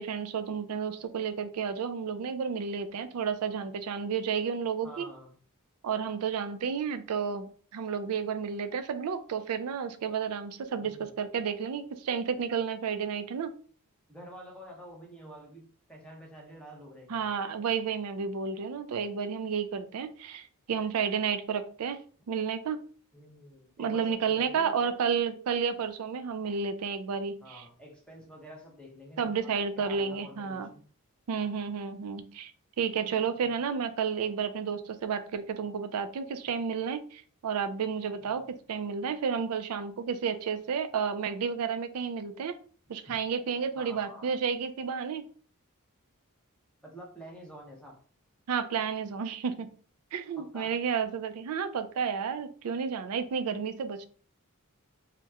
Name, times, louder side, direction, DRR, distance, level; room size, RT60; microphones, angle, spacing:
voice 1, 0.0-5.1 5.8-7.5 7.7-13.5 17.1-22.0 22.3-22.8 23.8-27.6 29.2-30.7 31.3-32.5 32.8-42.6 42.9-45.3 48.5-49.7 50.1-54.1, right 6 dB, 75° right, 10 dB, 0.4 m, -31 dB
voice 2, 4.8-5.4 10.8-11.1 14.1-17.2 23.1-25.0 27.4-30.8 33.4-33.5 38.2-38.5 43.1-43.2 43.7-44.3 46.8-48.0 50.4-50.7, equal, 5° left, -1 dB, 0.7 m, -48 dB
2.9 x 2.1 x 3.4 m, 0.43 s
head